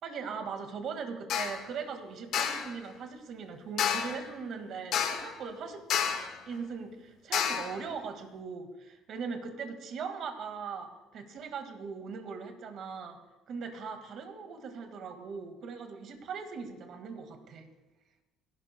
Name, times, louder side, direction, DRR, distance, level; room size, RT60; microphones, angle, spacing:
voice 1, 0.0-5.8 6.5-13.2 13.5-17.7, right 5 dB, 60° right, 6 dB, 1.9 m, -40 dB
sound 1, 1.3-1.6 2.3-2.7 3.8-4.2 4.9-5.4 5.9-6.4 7.3-7.8, left 8 dB, 70° left, 1.6 m, -30 dB
29.5 x 12.0 x 2.3 m, 1.1 s
cardioid pair, 105°, 0 cm